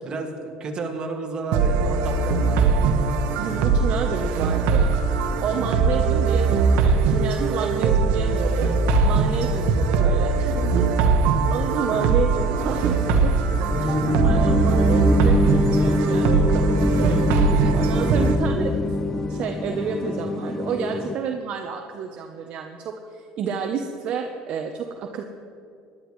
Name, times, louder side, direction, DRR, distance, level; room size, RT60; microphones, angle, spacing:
voice 1, 0.0-2.9 17.6-17.8, right 3 dB, 35° right, 1 dB, 2.0 m, -32 dB
sound 1, 1.5-18.4, right 4 dB, 75° right, 1.1 m, -21 dB
voice 2, 3.4-8.7 9.0-10.9 11.5-13.3 13.8-13.9 14.2-17.5 17.7-18.9 19.3-25.2, right 6 dB, 55° right, 3 dB, 0.8 m, -30 dB
sound 2, 12.4-21.1, left 2 dB, 20° left, 0.7 m, -24 dB
18.0 x 11.5 x 3.2 m, 2.5 s
supercardioid pair, 105°, 3 cm